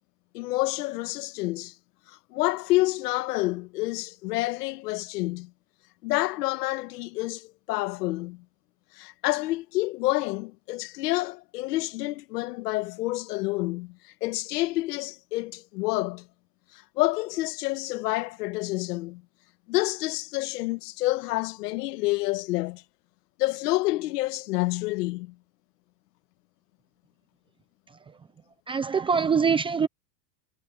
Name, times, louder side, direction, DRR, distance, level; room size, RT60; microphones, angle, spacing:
voice 1, 0.3-1.7 2.1-5.5 6.0-8.4 8.9-16.3 16.7-19.2 19.7-22.8 23.4-25.3, left 19 dB, 75° left, 1.6 m, -28 dB
voice 2, 28.7-29.9, right 6 dB, 10° right, 0.5 m, -24 dB
supercardioid pair, 155°, 48 cm